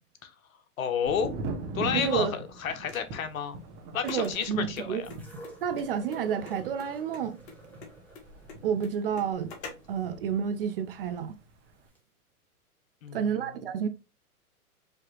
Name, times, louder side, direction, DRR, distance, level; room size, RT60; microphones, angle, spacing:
voice 1, 0.8-1.4 1.7-3.6 3.9-5.1 13.0-13.5, left 7 dB, 60° left, 1.0 m, -31 dB
Thunder, 1.1-10.7 11.0-11.7, right 3 dB, 25° right, 0.8 m, -41 dB
voice 2, 1.9-2.3 4.0-5.0 5.6-7.4 8.6-9.5 9.9-11.4 13.1-13.9, right 7 dB, 40° right, 0.4 m, -30 dB
sound 1, 2.9-10.0, left 4 dB, 45° left, 1.2 m, -47 dB
sound 2, 5.0-11.1 12.0-12.1, right 1 dB, 5° left, 1.0 m, -51 dB
4.9 x 2.8 x 3.0 m
hypercardioid pair, 115°, 45 cm